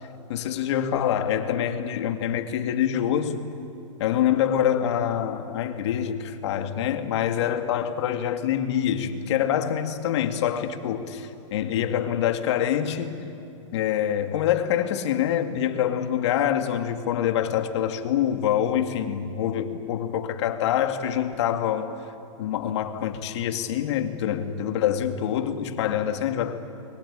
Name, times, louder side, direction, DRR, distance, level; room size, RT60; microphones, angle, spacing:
voice 1, 0.3-3.5 4.0-13.3 13.7-21.9 22.4-26.6, left 10 dB, 60° left, 2.2 m, -25 dB
30.0 x 22.5 x 8.7 m
hypercardioid pair, 155°, 17 cm